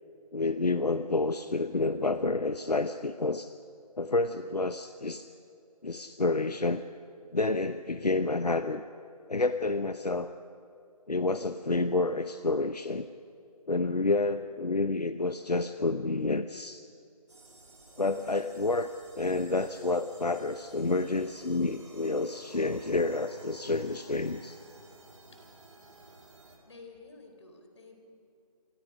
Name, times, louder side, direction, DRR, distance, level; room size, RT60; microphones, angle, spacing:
voice 1, 0.3-3.5 4.0-5.3 5.8-6.8 7.3-8.8 9.3-10.3 11.1-13.1 13.7-16.8 18.0-18.9 19.2-24.6, left 3 dB, 80° left, 11 dB, 0.9 m, -29 dB
sound 1, 17.3-26.6, right 2 dB, 45° right, 4.3 m, -54 dB
voice 2, 26.6-28.0, left 3 dB, 45° left, 4 dB, 4.5 m, -51 dB
27.5 x 24.5 x 5.1 m, 2.7 s
figure-of-eight pair, 160°, 20 cm